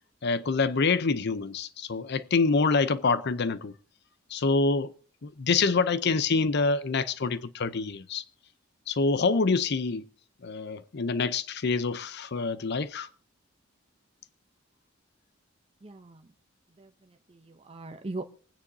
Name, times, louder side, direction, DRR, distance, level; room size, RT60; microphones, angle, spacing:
voice 1, 0.2-3.7 4.3-4.9 5.2-8.2 8.9-10.1 10.4-13.1, left 4 dB, 60° left, 0.6 m, -26 dB
voice 2, 15.8-16.3 16.8-18.2, right 2 dB, 30° right, 0.7 m, -41 dB
26.5 x 9.8 x 2.7 m
head